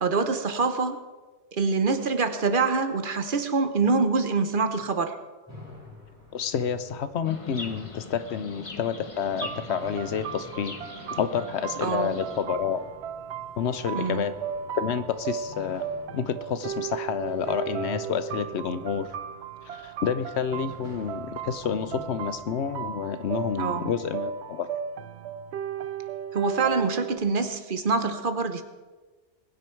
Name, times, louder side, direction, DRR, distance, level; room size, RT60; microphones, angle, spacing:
voice 1, 0.0-1.0 1.6-5.2 11.8-12.1 13.9-14.2 23.5-23.9 26.3-28.6, right 4 dB, 55° right, 8 dB, 1.1 m, -25 dB
sound 1, 5.5-23.5, left 1 dB, 15° right, 5.9 m, -50 dB
voice 2, 6.3-10.7 11.1-12.8 13.6-14.3 14.7-15.8 16.1-19.1 19.7-24.7, left 7 dB, 80° left, 12 dB, 1.0 m, -29 dB
Chirp tweet, 7.2-12.4, left 2 dB, 30° left, 1.2 m, -42 dB
sound 2, 9.4-27.2, right 8 dB, 80° right, 0.9 m, -36 dB
20.5 x 9.6 x 4.5 m, 1.3 s
omnidirectional pair, 1.1 m